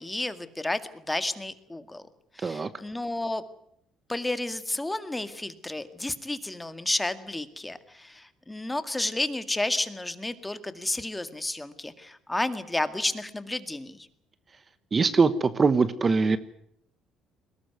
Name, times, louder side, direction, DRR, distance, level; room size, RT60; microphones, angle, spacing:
voice 1, 0.0-2.1 2.4-3.4 4.1-14.1, left 2 dB, 10° left, 11 dB, 2.0 m, -31 dB
voice 2, 14.9-16.4, right 4 dB, 30° right, 14 dB, 1.2 m, -22 dB
21.5 x 18.5 x 9.3 m, 0.71 s
cardioid pair, 100°, 0 cm